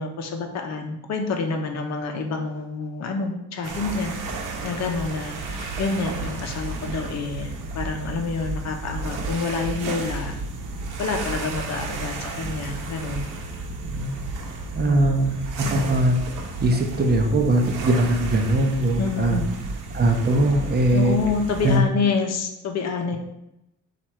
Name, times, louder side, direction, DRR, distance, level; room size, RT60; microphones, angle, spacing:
voice 1, 0.0-4.1 4.6-10.4 11.0-13.3 14.8-15.3 19.0-19.4 20.9-23.2, left 4 dB, 55° left, 4 dB, 0.7 m, -28 dB
sound 1, 3.6-21.8, right 3 dB, 85° right, 0.8 m, -32 dB
voice 2, 13.8-14.2 14.7-16.2 16.6-19.4 19.9-21.2 21.6-21.8, right 1 dB, 30° right, 3 dB, 0.7 m, -21 dB
4.5 x 2.5 x 4.4 m, 0.85 s
cardioid pair, 100°, 31 cm